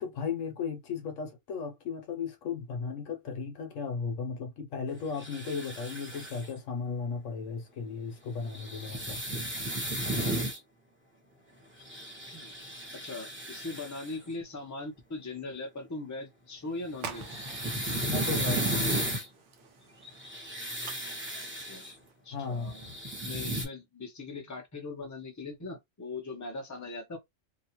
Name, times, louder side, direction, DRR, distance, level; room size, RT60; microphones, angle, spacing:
voice 1, 0.0-9.2 18.1-18.9 22.3-22.7, left 5 dB, 70° left, 1.1 m, -35 dB
sound 1, 5.1-6.5 8.5-10.6 11.8-14.1 16.9-19.3 20.0-21.9 22.6-23.7, right 1 dB, 10° right, 1.0 m, -34 dB
voice 2, 12.9-17.3 21.3-21.9 22.2-22.9 23.2-27.2, left 3 dB, 20° left, 0.6 m, -40 dB
sound 2, 16.9-22.1, right 7 dB, 65° right, 0.9 m, -48 dB
2.8 x 2.3 x 2.9 m
omnidirectional pair, 1.4 m